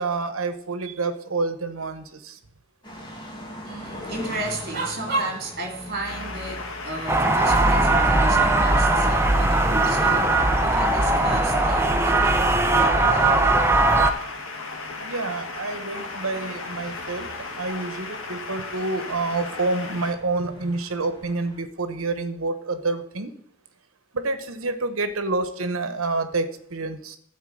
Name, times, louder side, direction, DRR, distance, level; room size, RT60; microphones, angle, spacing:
voice 1, 0.0-2.4 15.0-17.3 17.5-23.3 24.1-27.2, right 3 dB, 80° right, 10 dB, 1.1 m, -28 dB
sound 1, 2.8-21.6, left 1 dB, 20° left, 1.8 m, -43 dB
voice 2, 3.6-13.9, right 2 dB, 45° right, 3 dB, 2.4 m, -33 dB
sound 2, 6.0-20.1, left 3 dB, 70° left, 1.4 m, -36 dB
sound 3, 7.1-14.1, right 2 dB, 10° right, 0.5 m, -19 dB
12.0 x 4.6 x 7.8 m, 0.68 s
head